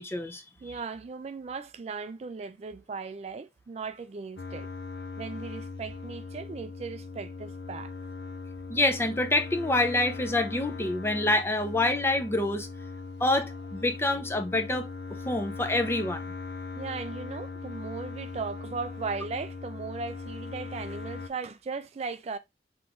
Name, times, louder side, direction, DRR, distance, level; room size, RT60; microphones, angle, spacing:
voice 1, 0.0-0.4 8.7-12.7 13.2-14.9 15.2-16.2, left 2 dB, 15° left, 0.5 m, -26 dB
voice 2, 0.6-4.7 5.2-7.9 16.7-22.4, right 4 dB, 35° right, 0.3 m, -37 dB
sound 1, 4.4-21.3, left 4 dB, 85° left, 0.7 m, -40 dB
3.8 x 3.0 x 4.7 m
head